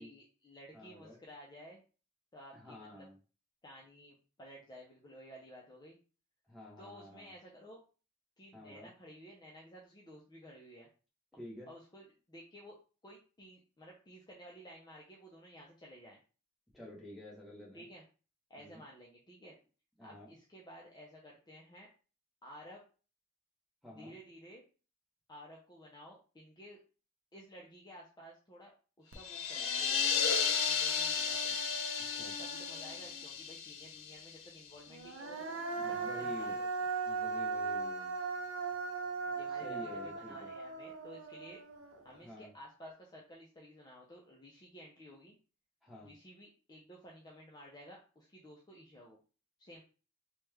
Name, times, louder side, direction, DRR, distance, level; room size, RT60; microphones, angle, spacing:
voice 1, 0.0-1.8 2.3-3.1 3.6-6.0 6.8-7.8 8.4-10.9 11.7-12.8 13.0-16.2 17.7-18.0 18.5-19.6 20.0-21.9 22.4-22.8 23.9-24.6 25.3-26.8 27.3-28.7 29.0-31.6 32.4-35.6 35.9-36.9 39.3-41.6 42.0-45.4 46.0-49.2 49.6-49.8, equal, 20° left, -2 dB, 0.5 m, -54 dB
voice 2, 0.7-1.2 2.5-3.1 6.5-7.3 8.5-8.9 11.4-11.7 16.7-17.9 18.6-18.8 20.0-20.3 23.8-24.1 32.1-32.3 35.7-36.5 37.1-38.1 39.5-40.5 42.2-42.5 45.8-46.1, left 1 dB, ahead, -4 dB, 1.0 m, -50 dB
Human voice, 29.1-29.2 29.6-33.2 34.9-42.2, right 4 dB, 75° right, 0.6 m, -39 dB
sound 1, 29.2-34.8, left 6 dB, 75° left, 0.4 m, -34 dB
3.1 x 2.2 x 3.2 m, 0.36 s
head